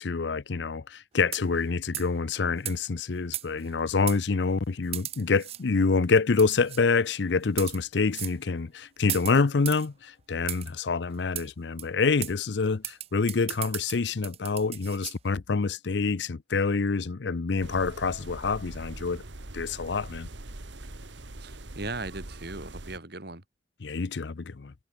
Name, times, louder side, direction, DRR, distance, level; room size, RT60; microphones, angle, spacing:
voice 1, 0.0-19.2 19.5-20.3 23.8-24.7, left 4 dB, 70° left, 0.6 m, -27 dB
sound 1, 1.2-1.6 1.9-2.2 2.6-2.8 3.3-3.7 4.1-4.2 4.9-5.6 6.4-6.8 7.4-7.8 8.1-8.4 9.1-9.9 10.5-10.7 11.3-11.5 11.8-11.9 12.2-12.3 12.8-15.2, right 13 dB, 35° right, 0.4 m, -36 dB
sound 2, 17.6-23.0, right 2 dB, 85° right, 2.0 m, -42 dB
voice 2, 21.4-23.4, right 2 dB, 60° right, 3.1 m, -38 dB
head